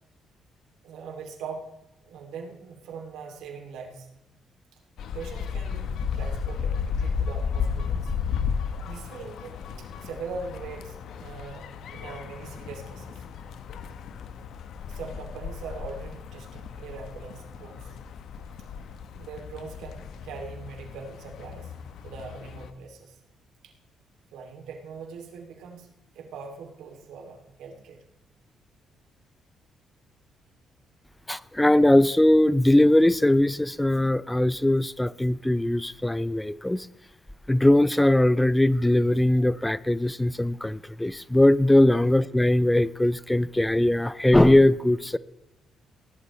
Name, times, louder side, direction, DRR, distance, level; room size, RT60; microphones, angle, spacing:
voice 1, 0.8-1.7 2.0-4.1 5.1-8.1 8.8-13.2 14.9-17.9 19.2-21.7 22.0-23.2 23.6-23.7 24.3-25.9 26.1-28.0 41.7-41.8, right 5 dB, 90° right, 2 dB, 2.6 m, -41 dB
sound 1, 5.0-22.7, left 6 dB, 75° left, 0.9 m, -34 dB
voice 2, 31.3-36.9 37.5-45.2, left 1 dB, 10° left, 17 dB, 0.4 m, -20 dB
17.5 x 11.5 x 3.2 m, 0.94 s
cardioid pair, 90°, 0 cm